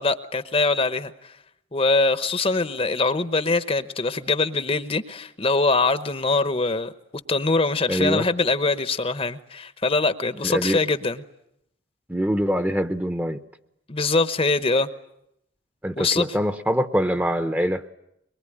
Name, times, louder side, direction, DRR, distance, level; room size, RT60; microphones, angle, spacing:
voice 1, 0.0-1.3 1.7-6.9 7.3-11.2 13.9-14.9 16.0-16.3, left 3 dB, 30° left, 12 dB, 1.0 m, -23 dB
voice 2, 7.9-8.3 10.4-10.8 12.1-13.4 15.8-17.8, equal, 10° right, 10 dB, 0.9 m, -24 dB
23.5 x 23.0 x 10.0 m, 0.80 s
head